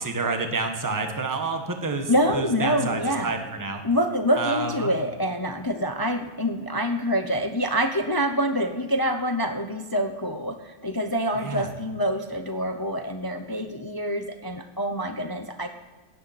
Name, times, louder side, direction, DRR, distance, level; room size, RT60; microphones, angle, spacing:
voice 1, 0.0-3.8 4.3-4.9 11.3-11.7, right 3 dB, 15° right, 4 dB, 1.3 m, -29 dB
voice 2, 2.1-3.4 3.8-15.7, equal, 25° left, 6 dB, 0.5 m, -26 dB
16.5 x 10.5 x 4.2 m, 1.3 s
omnidirectional pair, 1.6 m